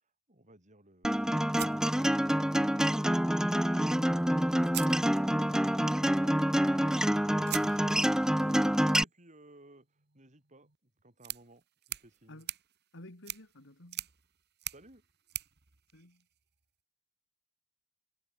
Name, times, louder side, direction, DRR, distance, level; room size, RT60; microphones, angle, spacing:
voice 1, 0.3-1.3 8.3-12.4 14.7-15.0, right 1 dB, 35° right, 6.8 m, -57 dB
Acoustic guitar, 1.0-9.0, equal, 5° right, 0.5 m, -27 dB
sound 1, 1.5-2.7 4.0-4.1 4.6-5.6 7.4-16.6, right 14 dB, 50° right, 2.1 m, -45 dB
voice 2, 7.3-8.2 12.3-12.5 12.9-14.1 15.9-16.2, left 1 dB, 55° left, 3.3 m, -52 dB
head